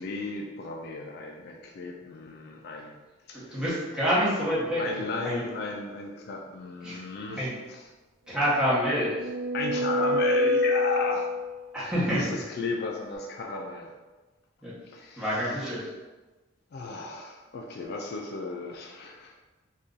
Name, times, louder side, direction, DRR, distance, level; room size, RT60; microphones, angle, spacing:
voice 1, 0.0-3.0 3.3-3.6 4.8-7.8 9.5-11.3 12.1-13.9 14.9-15.6 16.7-19.3, left 3 dB, 55° left, 1 dB, 0.3 m, -35 dB
voice 2, 3.3-4.8 5.2-5.5 6.8-7.0 7.3-7.5 8.3-9.3 11.7-12.3 14.6-14.7 15.2-15.8, equal, 5° right, -10 dB, 1.1 m, -27 dB
sound 1, 8.7-11.7, left 1 dB, 90° right, 0.5 m, -27 dB
2.6 x 2.4 x 3.7 m, 1.2 s
head